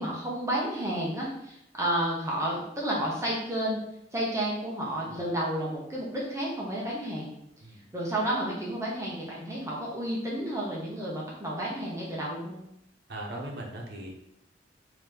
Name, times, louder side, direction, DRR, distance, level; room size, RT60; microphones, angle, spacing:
voice 1, 0.0-3.8 4.1-7.3 7.9-12.6, right 1 dB, 15° right, -4 dB, 0.7 m, -31 dB
voice 2, 13.1-14.1, right 1 dB, 65° right, 0 dB, 0.8 m, -39 dB
3.8 x 2.8 x 3.3 m, 0.78 s
head